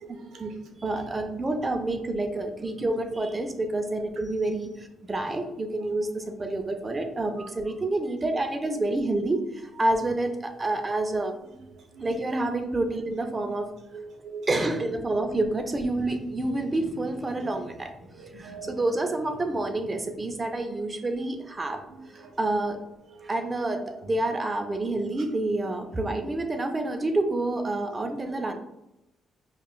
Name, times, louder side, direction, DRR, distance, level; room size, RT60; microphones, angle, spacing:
voice 1, 0.0-0.7 7.4-7.5 11.4-11.6 11.9-12.1 13.9-14.5 15.2-15.3 17.4-17.5 18.1-18.8 21.9-22.4 23.1-23.3 24.0-24.2 27.8-28.0, right 4 dB, 75° right, 3 dB, 0.7 m, -44 dB
voice 2, 0.8-11.4 12.0-13.7 14.5-17.9 18.3-21.8 22.1-22.8 23.2-28.5, right 2 dB, 25° right, 6 dB, 0.5 m, -28 dB
5.4 x 2.4 x 2.3 m, 0.89 s
cardioid pair, 90°, 0 cm